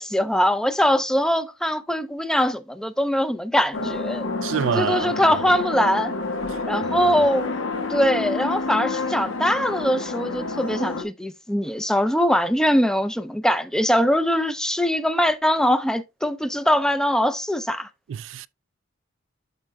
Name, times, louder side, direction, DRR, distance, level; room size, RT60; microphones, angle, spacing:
voice 1, 0.0-4.3 4.7-6.1 6.7-7.5 7.9-17.9, equal, 5° left, 0.4 m, -22 dB
sound 1, 3.7-11.0, left 3 dB, 75° left, 1.1 m, -28 dB
voice 2, 4.4-5.1 18.1-18.5, right 8 dB, 70° right, 0.3 m, -26 dB
12.0 x 4.4 x 2.2 m
head